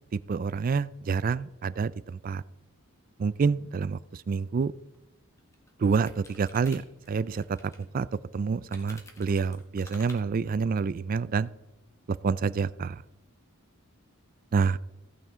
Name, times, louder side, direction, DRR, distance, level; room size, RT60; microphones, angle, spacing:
voice 1, 0.3-2.4 3.2-4.0 4.3-4.7 5.8-6.8 7.1-7.6 7.9-8.1 8.3-11.5 12.2-13.0 14.5-14.8, right 5 dB, 40° right, 18 dB, 0.3 m, -27 dB
sound 1, 4.9-5.0 5.4-7.9 8.7-10.2, left 1 dB, 15° left, 1.4 m, -50 dB
15.0 x 9.0 x 3.7 m, 0.99 s
head